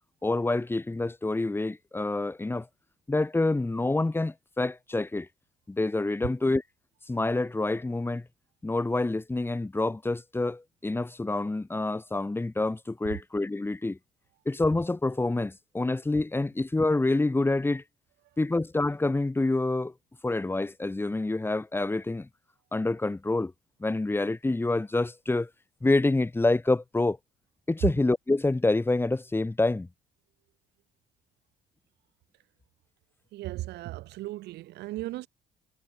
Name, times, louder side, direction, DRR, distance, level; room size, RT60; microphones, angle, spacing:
voice 1, 0.2-2.7 3.1-5.3 5.7-6.6 7.1-8.3 8.6-14.0 14.4-17.8 18.4-19.9 20.2-22.3 22.7-23.5 23.8-25.5 25.8-27.2 27.7-29.9, left 2 dB, 15° left, 4.7 m, -27 dB
voice 2, 33.3-35.3, right 17 dB, 80° right, 6.5 m, -37 dB
cardioid pair, 110°, 17 cm